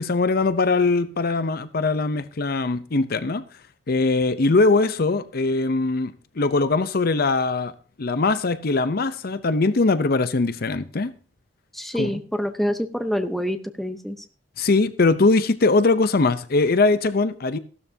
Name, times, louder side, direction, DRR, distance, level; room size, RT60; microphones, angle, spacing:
voice 1, 0.0-3.5 3.9-7.7 8.0-11.1 11.9-12.1 14.6-17.6, left 3 dB, 55° left, 0.7 m, -21 dB
voice 2, 11.7-14.2, equal, ahead, 0.8 m, -26 dB
15.0 x 12.5 x 2.8 m
head